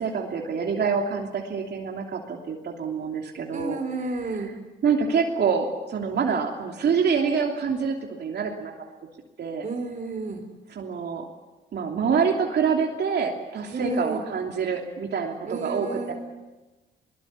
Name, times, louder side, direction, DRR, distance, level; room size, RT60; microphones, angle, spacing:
voice 1, 0.0-4.5 4.8-8.7 9.4-9.7 10.7-11.2 11.7-16.1, right 6 dB, 55° right, 1 dB, 3.0 m, -26 dB
voice 2, 3.5-4.5 9.6-10.4 13.7-14.2 15.5-16.1, right 3 dB, 40° right, 4 dB, 3.8 m, -31 dB
21.5 x 21.5 x 8.4 m, 1.1 s
cardioid pair, 90°, 20 cm